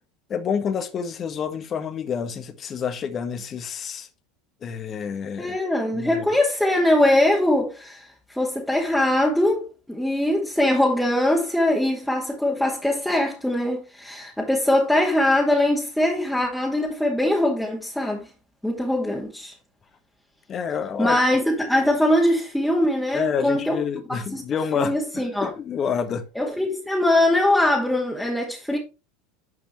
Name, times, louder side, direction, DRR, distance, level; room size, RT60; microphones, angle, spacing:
voice 1, 0.3-4.1 4.6-5.6 5.9-6.2 20.5-21.2 23.1-26.3, left 7 dB, 35° left, 1.6 m, -28 dB
voice 2, 5.4-18.3 18.6-19.5 21.0-23.8 24.3-24.4 24.8-25.5 26.4-28.8, left 1 dB, ahead, 2.3 m, -22 dB
11.0 x 5.1 x 3.2 m
hypercardioid pair, 85°, 0 cm